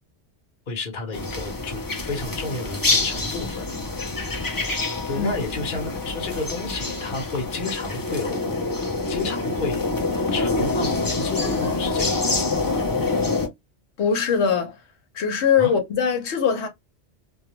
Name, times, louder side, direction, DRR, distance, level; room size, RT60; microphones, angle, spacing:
voice 1, 0.7-3.7 5.1-8.4 9.1-9.8 10.3-12.8 15.6-15.7, left 3 dB, 50° left, 1.0 m, -31 dB
sound 1, 1.1-13.5, left 3 dB, 30° left, 0.4 m, -26 dB
voice 2, 14.0-14.8 15.1-16.7, left 7 dB, 85° left, 1.0 m, -21 dB
2.3 x 2.2 x 2.9 m
omnidirectional pair, 1.1 m